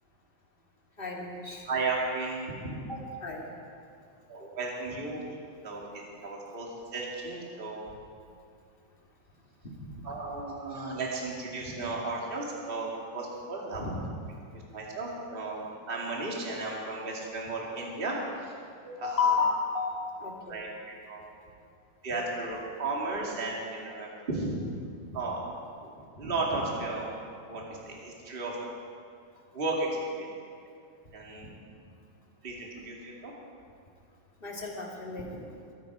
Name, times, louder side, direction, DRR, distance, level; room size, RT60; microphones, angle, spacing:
voice 1, 1.0-1.7 2.9-3.5 9.9-10.0 13.8-14.0 18.8-20.6 34.4-35.5, left 5 dB, 20° left, -2 dB, 1.8 m, -32 dB
voice 2, 1.7-2.7 4.3-5.2 5.6-5.9 6.2-7.9 10.0-13.8 14.5-18.5 19.0-19.5 20.5-21.2 22.0-24.6 25.1-25.4 25.8-27.1 27.5-28.6 29.5-30.3 31.1-31.5 32.4-33.3, right 3 dB, 20° right, -3 dB, 2.1 m, -34 dB
22.0 x 10.0 x 4.9 m, 2.4 s
omnidirectional pair, 3.6 m